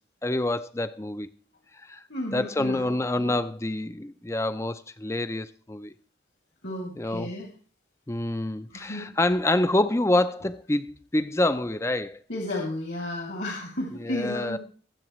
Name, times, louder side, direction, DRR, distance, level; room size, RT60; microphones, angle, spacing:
voice 1, 0.2-1.3 1.8-2.0 2.3-5.9 6.9-7.3 8.1-12.2 13.9-14.6, left 1 dB, 15° left, 0.5 m, -27 dB
voice 2, 2.1-3.4 6.6-7.5 8.7-9.1 12.3-14.6, left 1 dB, 75° left, 2.7 m, -33 dB
22.0 x 8.1 x 3.1 m
head